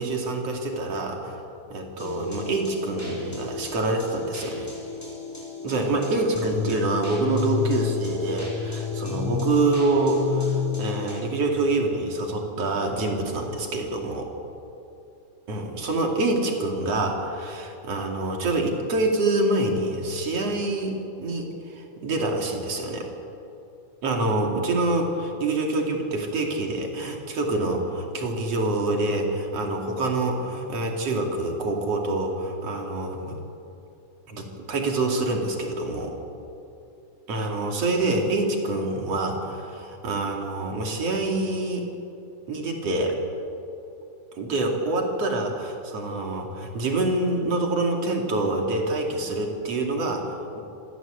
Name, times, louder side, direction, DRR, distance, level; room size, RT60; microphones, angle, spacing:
voice 1, 0.0-1.4 1.7-4.7 5.6-14.3 15.5-23.1 24.0-33.4 34.3-36.2 37.3-41.9 42.5-43.2 44.4-50.6, right 2 dB, 55° right, 1 dB, 3.6 m, -26 dB
sound 1, 2.0-11.1, left 7 dB, 5° left, 5.6 m, -31 dB
27.0 x 16.0 x 8.2 m, 2.7 s
omnidirectional pair, 3.4 m